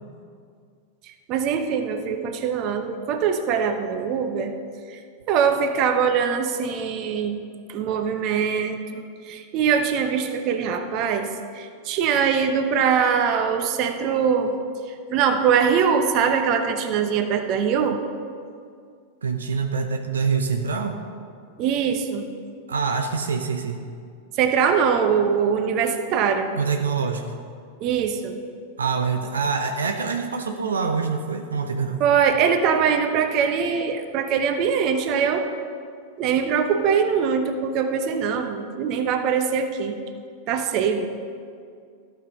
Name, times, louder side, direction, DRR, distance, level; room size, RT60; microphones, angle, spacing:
voice 1, 1.0-4.5 4.9-5.0 5.3-7.4 7.7-14.5 15.1-18.0 21.6-22.3 24.4-26.5 27.8-28.4 32.0-35.4 36.2-40.0 40.5-41.1, right 7 dB, 45° right, 7 dB, 0.9 m, -22 dB
voice 2, 19.2-21.0 22.7-23.8 26.6-27.3 28.8-32.0, right 5 dB, 80° right, 5 dB, 0.7 m, -25 dB
12.5 x 5.7 x 5.4 m, 2.2 s
hypercardioid pair, 95°, 0 cm